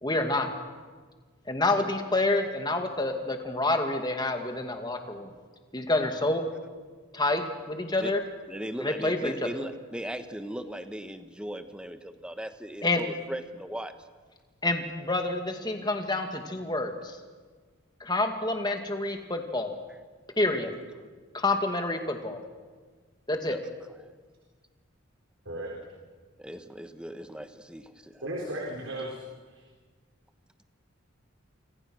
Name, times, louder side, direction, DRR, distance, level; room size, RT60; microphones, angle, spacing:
voice 1, 0.0-0.5 1.5-5.3 5.7-6.4 7.1-8.2 8.8-9.3 12.8-13.0 14.6-17.2 18.0-19.8 20.4-20.7 21.3-22.4 23.3-23.6, left 2 dB, 20° left, 5 dB, 2.2 m, -28 dB
voice 2, 8.5-13.9 20.5-20.7 23.4-23.6 26.4-28.2, equal, 5° right, 8 dB, 1.2 m, -38 dB
voice 3, 28.2-29.2 29.5-29.6, right 1 dB, 70° right, -2 dB, 4.3 m, -35 dB
28.5 x 26.0 x 6.3 m, 1.5 s
head